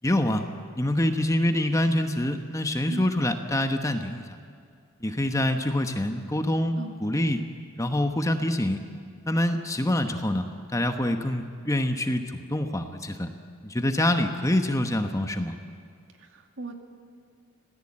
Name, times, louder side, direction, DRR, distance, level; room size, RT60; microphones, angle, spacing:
voice 1, 0.0-0.4 0.8-4.2 5.0-7.4 7.8-8.8 9.3-10.4 10.7-13.3 13.6-15.5, left 1 dB, 15° left, 6 dB, 1.1 m, -25 dB
voice 2, 16.2-16.8, right 2 dB, 60° right, 4 dB, 2.4 m, -37 dB
26.0 x 17.5 x 8.8 m, 2.3 s
head